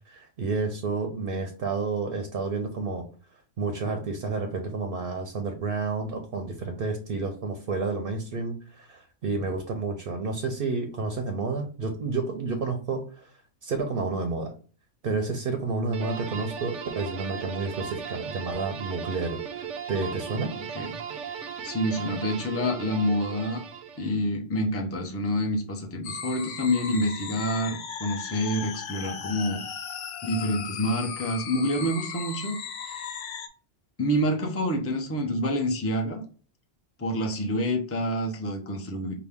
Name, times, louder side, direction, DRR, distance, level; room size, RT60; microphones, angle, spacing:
voice 1, 0.1-3.1 3.6-13.3 13.6-14.5 15.0-20.5, right 4 dB, 55° right, 5 dB, 0.8 m, -30 dB
sound 1, 15.9-24.3, right 7 dB, 85° right, 0.9 m, -37 dB
voice 2, 20.6-21.0 21.3-23.6 24.0-29.6 30.2-32.6 32.9-33.0 34.0-36.2 37.0-39.2, equal, 15° left, 1 dB, 0.6 m, -28 dB
sound 2, 26.0-33.5, left 6 dB, 85° left, 1.0 m, -37 dB
5.7 x 2.2 x 3.5 m, 0.40 s
omnidirectional pair, 1.2 m